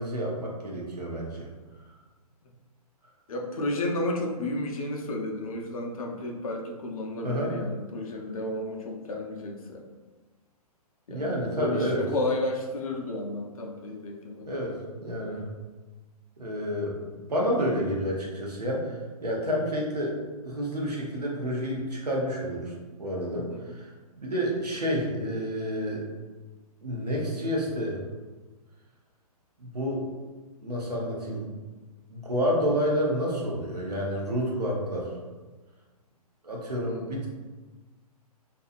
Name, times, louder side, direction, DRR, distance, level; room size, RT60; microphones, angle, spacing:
voice 1, 0.0-1.5 7.2-7.5 11.1-12.1 14.5-15.4 16.4-16.9 17.3-20.1 20.4-23.9 24.2-26.0 26.8-28.0 29.6-30.0 30.6-31.5 32.1-35.1 36.4-37.3, equal, 85° right, -3 dB, 0.8 m, -29 dB
voice 2, 3.3-9.8 11.1-14.5 23.5-23.7 36.8-37.0, left 1 dB, 65° left, 2 dB, 0.5 m, -32 dB
2.7 x 2.3 x 2.5 m, 1.3 s
figure-of-eight pair, 125°, 20 cm